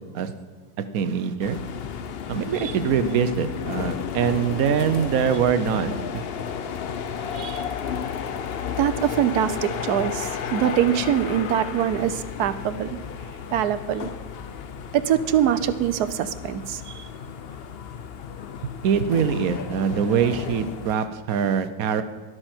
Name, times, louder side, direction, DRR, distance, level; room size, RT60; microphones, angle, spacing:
voice 1, 0.9-1.6 2.3-6.2 18.8-22.0, right 7 dB, 70° right, 10 dB, 1.2 m, -23 dB
sound 1, 1.4-20.9, left 7 dB, 55° left, 0.7 m, -33 dB
voice 2, 7.3-7.7 8.8-13.0 13.5-14.1 14.9-17.0, right 10 dB, 85° right, 13 dB, 1.3 m, -24 dB
12.5 x 12.5 x 4.5 m, 1.5 s
omnidirectional pair, 1.6 m